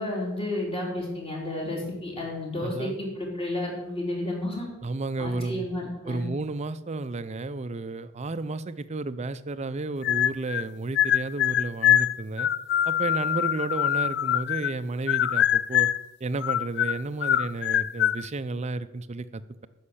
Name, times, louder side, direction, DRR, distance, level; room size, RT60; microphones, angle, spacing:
voice 1, 0.0-4.7 5.2-6.2, left 1 dB, 25° left, -2 dB, 3.1 m, -31 dB
voice 2, 2.6-3.0 4.8-5.7 6.1-12.5 12.9-15.9 16.2-19.7, right 3 dB, 30° right, 13 dB, 0.5 m, -32 dB
sound 1, 10.0-10.7 11.0-14.8 15.1-16.1 16.4-18.2, left 11 dB, 55° left, 0.3 m, -24 dB
9.8 x 6.5 x 8.5 m, 1.0 s
head